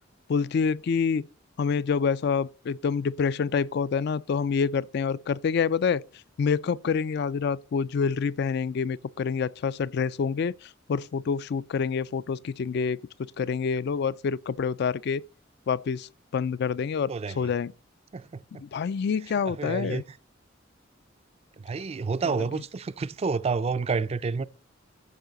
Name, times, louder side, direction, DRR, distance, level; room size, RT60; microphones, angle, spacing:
voice 1, 0.3-1.3 1.6-6.0 6.4-13.0 13.4-15.2 15.7-17.7 18.5-20.0 22.2-22.6, left 6 dB, 60° left, 0.4 m, -27 dB
voice 2, 17.1-17.4 18.1-18.4 19.6-20.0 21.6-24.5, right 4 dB, 30° right, 0.4 m, -29 dB
13.5 x 5.7 x 3.9 m
head